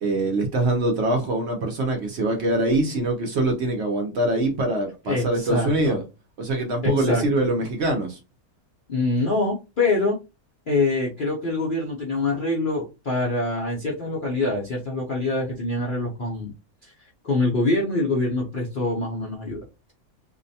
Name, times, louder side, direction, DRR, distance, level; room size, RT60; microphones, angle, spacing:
voice 1, 0.0-6.0 6.4-8.2, right 2 dB, 60° right, 0.8 m, -23 dB
voice 2, 5.1-6.0 6.8-7.5 8.9-10.2 10.7-16.5 16.8-16.9 17.2-19.6, left 2 dB, 55° left, 0.5 m, -25 dB
2.6 x 2.1 x 2.6 m
omnidirectional pair, 1.5 m